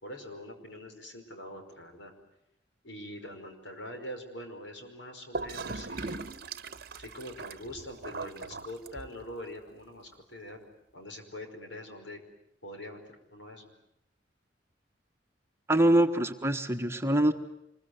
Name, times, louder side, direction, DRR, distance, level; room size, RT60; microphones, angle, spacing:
voice 1, 0.0-2.1 2.8-6.3 7.0-10.7 10.9-12.2 12.6-13.7, equal, 85° left, 5 dB, 5.2 m, -44 dB
Gurgling / Toilet flush, 5.3-9.3, right 3 dB, 55° right, 1.0 m, -39 dB
voice 2, 15.7-17.3, right 1 dB, 15° right, 6 dB, 1.4 m, -24 dB
25.5 x 22.0 x 9.6 m, 0.82 s
head